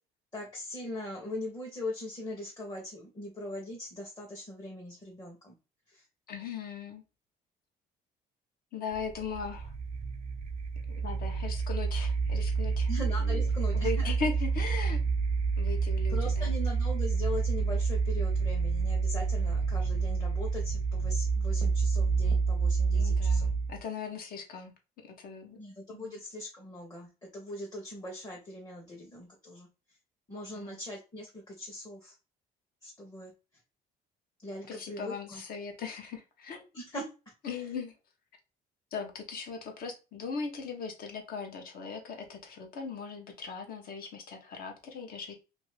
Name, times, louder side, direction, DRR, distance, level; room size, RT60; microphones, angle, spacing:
voice 1, 0.3-5.6 5.9-6.0 12.9-14.1 16.1-23.5 25.6-29.7 30.3-32.2 32.8-33.3 34.4-35.4 36.7-37.1, left 1 dB, 25° left, -2 dB, 0.9 m, -40 dB
voice 2, 6.3-7.0 8.7-9.7 11.0-12.9 13.2-13.5 13.7-15.0 15.6-16.5 22.9-24.7 25.2-25.6 25.9-26.2 30.5-30.8 34.7-36.6 37.4-37.9 38.9-45.3, left 4 dB, 60° left, 4 dB, 0.9 m, -39 dB
sound 1, 8.9-23.8, right 4 dB, 40° right, 0.4 m, -28 dB
2.6 x 2.6 x 3.2 m, 0.31 s
cardioid pair, 110°, 17 cm